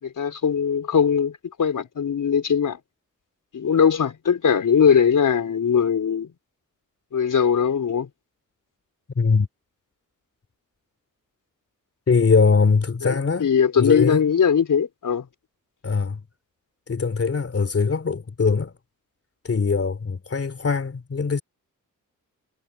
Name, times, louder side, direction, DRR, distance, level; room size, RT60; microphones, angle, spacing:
voice 1, 0.0-2.8 3.5-6.3 7.1-8.1 13.0-15.3, left 7 dB, 70° left, 4.8 m, -20 dB
voice 2, 9.1-9.5 12.1-13.5 13.8-14.3 15.8-16.2 16.9-18.7 19.4-21.4, left 5 dB, 45° left, 3.1 m, -21 dB
wide cardioid pair, 125°, 33 cm